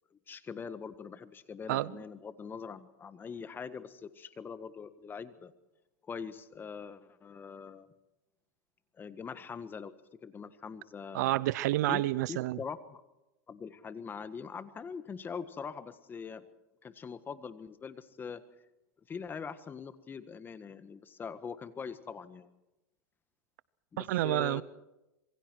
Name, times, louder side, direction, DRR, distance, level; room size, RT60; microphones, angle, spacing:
voice 1, 0.1-5.5 6.0-7.9 9.0-9.9 10.2-11.4 11.9-12.0 12.3-13.0 13.5-16.5 16.8-18.4 19.1-22.5 23.9-24.6, left 6 dB, 20° left, 1.6 m, -43 dB
voice 2, 11.1-12.6 24.0-24.6, right 16 dB, 70° right, 0.8 m, -29 dB
26.5 x 23.0 x 4.7 m
supercardioid pair, 120°, 10 cm